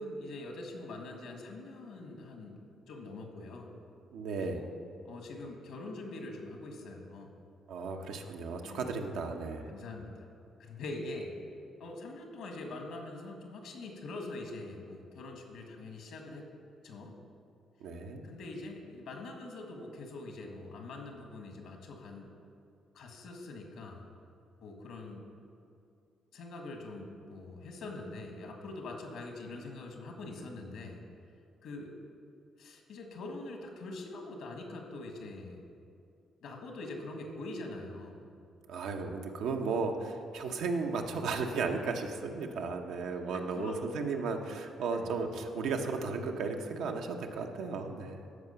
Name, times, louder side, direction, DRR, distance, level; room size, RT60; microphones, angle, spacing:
voice 1, 0.0-2.6 2.9-3.7 4.4-4.7 5.0-7.3 8.6-8.9 9.7-10.3 10.6-11.3 11.8-16.5 16.8-17.1 18.2-22.3 22.9-24.0 24.6-25.2 26.3-31.0 31.6-31.9 32.6-35.6 36.4-38.2 41.5-41.7 43.2-43.8 44.9-45.1, left 2 dB, 80° left, 2 dB, 1.6 m, -43 dB
voice 2, 4.1-4.6 7.7-9.7 17.8-18.2 38.7-48.2, right 4 dB, 85° right, 4 dB, 0.8 m, -35 dB
13.5 x 4.9 x 5.7 m, 2.5 s
cardioid pair, 90°, 0 cm